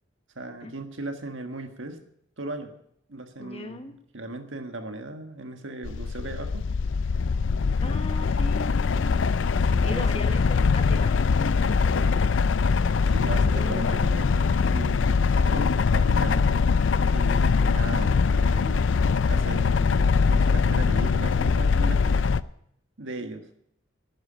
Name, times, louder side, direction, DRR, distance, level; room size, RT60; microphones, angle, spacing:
voice 1, 0.3-2.0 2.4-2.7 3.1-6.7 9.7-10.3 13.1-16.4 17.1-18.9 19.2-22.5 23.0-23.5, right 2 dB, 70° right, 7 dB, 1.6 m, -37 dB
voice 2, 3.4-3.9 7.8-9.1 9.8-12.3 13.4-14.0, left 1 dB, 30° left, 7 dB, 1.2 m, -38 dB
sound 1, 5.8-22.4, left 5 dB, 70° left, 0.4 m, -22 dB
11.5 x 9.5 x 8.6 m, 0.74 s
head